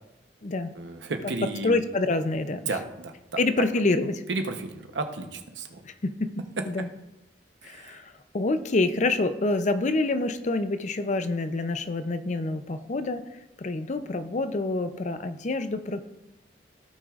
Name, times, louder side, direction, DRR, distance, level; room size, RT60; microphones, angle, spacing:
voice 1, 0.8-1.7 2.5-3.1 4.3-5.8 7.6-8.0, right 3 dB, 80° right, 6 dB, 0.9 m, -33 dB
voice 2, 1.6-2.6 3.4-4.2 5.8-6.3 6.7-6.9 7.6-13.2 13.6-16.0, left 2 dB, 40° left, 10 dB, 0.5 m, -27 dB
16.5 x 5.9 x 2.5 m, 0.95 s
head